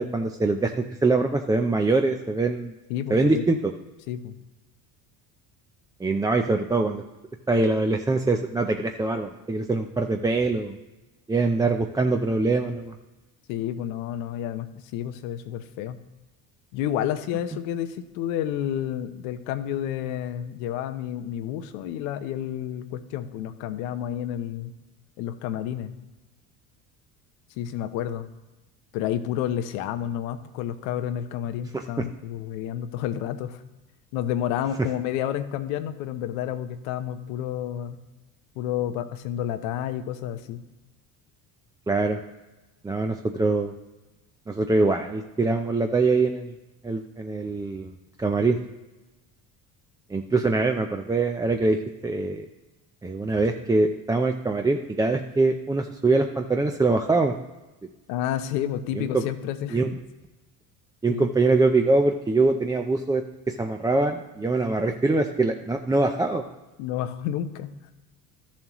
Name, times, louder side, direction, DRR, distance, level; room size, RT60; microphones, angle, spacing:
voice 1, 0.0-2.7 3.1-3.7 6.0-7.0 7.5-10.8 11.3-12.9 31.7-31.8 41.9-42.2 42.8-43.7 44.5-46.5 46.8-47.9 48.2-48.6 50.1-51.8 52.0-52.5 53.0-57.3 58.9-59.2 59.7-59.9 61.0-66.4, right 3 dB, 10° right, 4 dB, 0.4 m, -23 dB
voice 2, 2.9-3.5 4.1-4.4 13.5-16.0 16.7-24.7 25.2-25.9 27.6-28.3 28.9-33.6 34.1-38.0 38.6-40.6 58.1-59.8 61.1-61.3 66.8-67.7, left 10 dB, 90° left, 10 dB, 0.8 m, -30 dB
13.0 x 7.2 x 3.0 m, 1.1 s
supercardioid pair, 95°, 40 cm